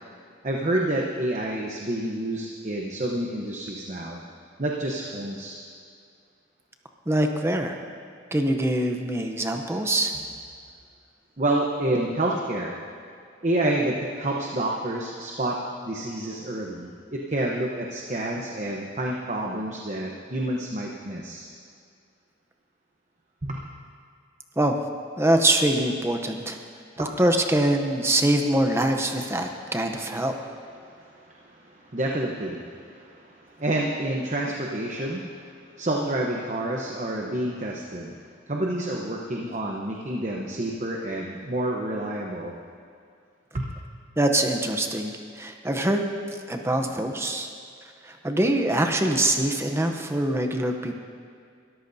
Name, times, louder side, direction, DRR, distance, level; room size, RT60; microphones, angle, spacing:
voice 1, 0.4-4.2 4.6-5.6 11.4-12.8 13.4-15.6 15.8-21.5 23.4-23.6 27.0-27.1 30.8-35.4 35.8-38.2 38.5-42.5, right 1 dB, 35° right, -1 dB, 0.9 m, -29 dB
voice 2, 7.1-7.8 8.3-10.1 24.6-24.8 25.2-26.6 27.0-30.3 44.2-46.0 46.5-47.5 48.0-51.0, right 1 dB, 15° right, 4 dB, 0.7 m, -24 dB
22.0 x 13.5 x 2.7 m, 2.3 s
head